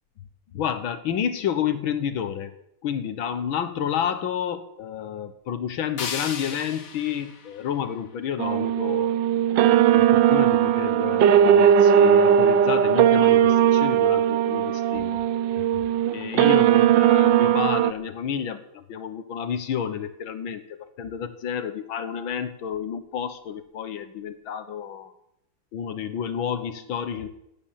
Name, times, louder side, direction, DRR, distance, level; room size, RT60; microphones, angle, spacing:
voice 1, 0.5-2.5 2.8-9.1 9.7-15.2 15.6-15.8 16.1-25.1 25.7-27.3, left 8 dB, 75° left, 11 dB, 1.9 m, -30 dB
sound 1, 6.0-8.9, left 6 dB, 45° left, 1.5 m, -37 dB
sound 2, 8.4-17.9, right 9 dB, 70° right, 1.3 m, -18 dB
16.5 x 9.0 x 7.4 m, 0.80 s
omnidirectional pair, 2.2 m